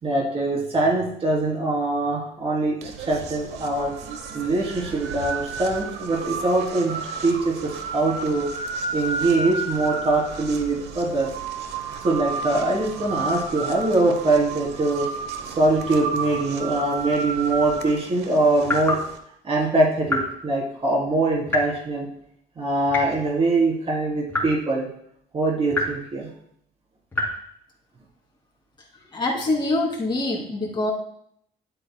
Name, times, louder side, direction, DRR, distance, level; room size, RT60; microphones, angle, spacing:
voice 1, 0.0-3.9 4.3-8.5 8.9-11.3 12.0-15.1 15.4-19.0 19.4-22.1 22.6-24.9 25.3-26.3, right 2 dB, 35° right, -3 dB, 3.5 m, -23 dB
sound 1, 2.8-19.2, right 4 dB, 80° right, 1.1 m, -32 dB
sound 2, 18.6-19.1 20.1-20.3 21.5-21.8 22.9-23.3 24.3-24.6 25.7-26.0 27.1-27.4, left 2 dB, 10° left, 3.4 m, -26 dB
voice 2, 29.1-30.9, left 2 dB, 25° left, -2 dB, 2.8 m, -25 dB
12.0 x 8.3 x 2.3 m, 0.70 s
cardioid pair, 110°, 17 cm